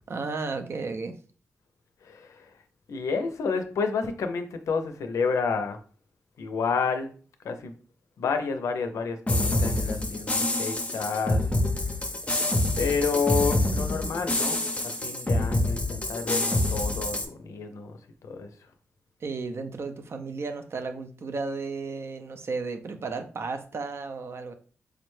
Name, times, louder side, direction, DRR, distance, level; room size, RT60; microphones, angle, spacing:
voice 1, 0.1-1.2 19.2-24.5, right 4 dB, 55° right, 7 dB, 0.5 m, -33 dB
voice 2, 2.0-2.5 2.9-5.8 6.4-7.1 7.4-7.8 8.2-11.5 12.8-14.6 14.8-18.5, left 5 dB, 90° left, 7 dB, 0.5 m, -30 dB
sound 1, 9.3-17.3, left 1 dB, 25° left, 0.5 m, -26 dB
4.8 x 2.1 x 3.1 m, 0.41 s
cardioid pair, 85°, 5 cm